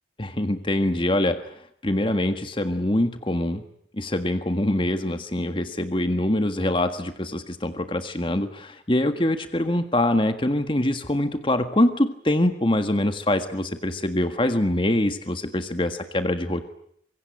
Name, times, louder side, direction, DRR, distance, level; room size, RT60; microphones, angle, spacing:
voice 1, 0.2-1.4 1.8-3.6 4.0-16.6, left 1 dB, 30° left, 8 dB, 1.7 m, -24 dB
25.0 x 22.5 x 9.3 m, 0.69 s
head